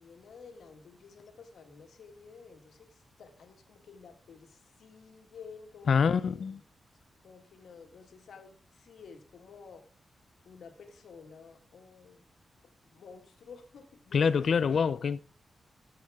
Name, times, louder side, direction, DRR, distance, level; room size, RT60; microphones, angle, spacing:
voice 1, 0.0-6.6 7.2-9.8 10.4-12.2 12.9-14.4, left 5 dB, 80° left, 1.7 m, -52 dB
voice 2, 5.9-6.6 14.1-15.2, left 6 dB, 60° left, 0.4 m, -25 dB
14.0 x 7.1 x 3.6 m
wide cardioid pair, 125°, 0 cm